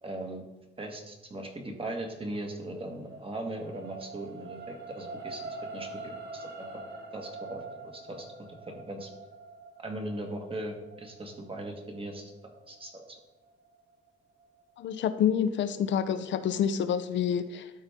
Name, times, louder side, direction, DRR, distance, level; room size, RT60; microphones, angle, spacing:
voice 1, 0.0-0.4 0.8-5.4 5.7-6.7 7.1-8.3 8.7-9.1 9.8-12.3 12.7-13.2, right 1 dB, 25° right, 3 dB, 1.6 m, -39 dB
sound 1, 2.3-14.8 15.3-15.4, right 3 dB, 65° right, 1.5 m, -45 dB
voice 2, 14.8-17.7, left 8 dB, 70° left, 12 dB, 0.6 m, -28 dB
13.0 x 4.3 x 3.5 m, 0.98 s
cardioid pair, 90°, 20 cm